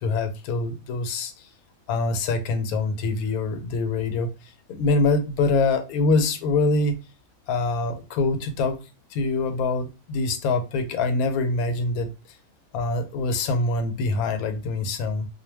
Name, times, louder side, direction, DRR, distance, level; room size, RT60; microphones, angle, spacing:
voice 1, 0.0-1.3 1.9-4.3 4.7-6.9 7.5-8.8 9.1-12.1 12.7-15.3, left 3 dB, 90° left, 8 dB, 1.0 m, -24 dB
2.3 x 2.2 x 3.2 m, 0.29 s
omnidirectional pair, 1.5 m